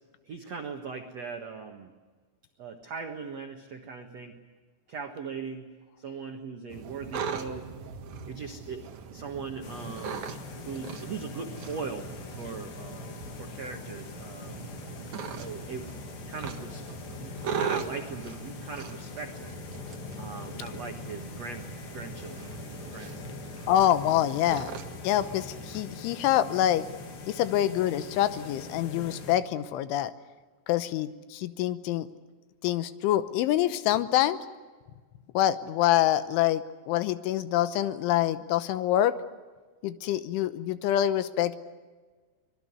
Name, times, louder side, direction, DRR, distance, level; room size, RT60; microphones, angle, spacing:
voice 1, 0.2-1.9 2.6-4.3 4.9-5.7 6.0-7.7 8.2-8.8 9.1-10.2 10.6-14.6 15.3-16.8 17.2-19.5 20.2-21.6 21.9-23.5, right 5 dB, 90° right, 4 dB, 1.4 m, -40 dB
sound 1, 6.7-25.8, right 6 dB, 65° right, 1.9 m, -40 dB
sound 2, 9.6-29.4, left 4 dB, 60° left, 4.5 m, -43 dB
voice 2, 23.7-24.7 25.0-26.8 27.3-30.1 30.7-32.1 32.6-34.4 35.3-39.1 39.8-41.6, left 12 dB, 75° left, 13 dB, 3.2 m, -26 dB
25.0 x 22.0 x 9.6 m, 1.4 s
omnidirectional pair, 5.8 m